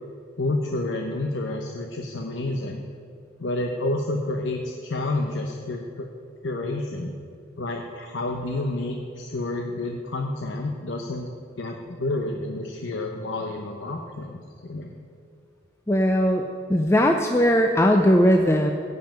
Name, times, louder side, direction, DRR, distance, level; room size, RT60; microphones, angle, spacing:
voice 1, 0.4-2.8 3.4-6.1 6.4-7.1 7.6-14.9, left 2 dB, 85° left, 2 dB, 0.9 m, -29 dB
voice 2, 15.9-16.4 16.7-18.7, equal, 15° left, 3 dB, 0.5 m, -19 dB
16.0 x 5.6 x 9.0 m, 2.3 s
head